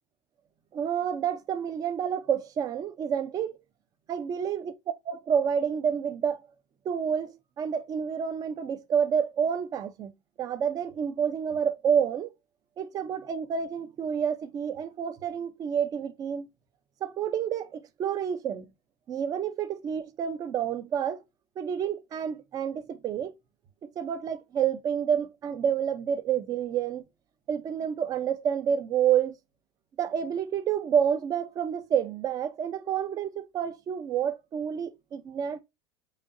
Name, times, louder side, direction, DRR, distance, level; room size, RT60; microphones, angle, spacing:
voice 1, 0.7-3.6 4.1-4.7 5.1-6.4 6.8-10.1 10.4-12.3 12.8-16.5 17.0-18.7 19.1-21.2 21.6-23.3 24.0-27.1 27.5-29.4 30.0-35.6, right 8 dB, 30° right, 0.6 m, -29 dB
5.0 x 2.8 x 2.6 m
supercardioid pair, 155°, 13 cm